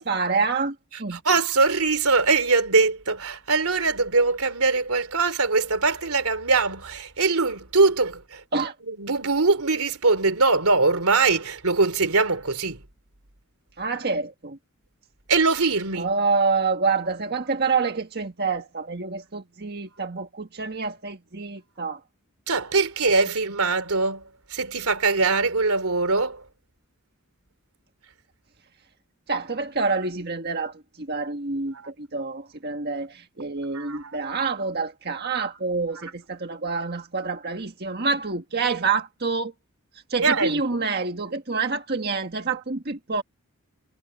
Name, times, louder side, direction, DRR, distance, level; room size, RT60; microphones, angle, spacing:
voice 1, 0.0-1.2 8.5-8.7 13.8-14.6 16.0-22.0 29.3-39.5 40.1-43.2, right 4 dB, 45° right, 1.6 m, -27 dB
voice 2, 1.1-8.4 8.9-12.8 15.3-16.1 22.5-24.2 24.5-26.4 33.7-34.0 40.2-40.6, right 3 dB, 80° right, 3.1 m, -22 dB
head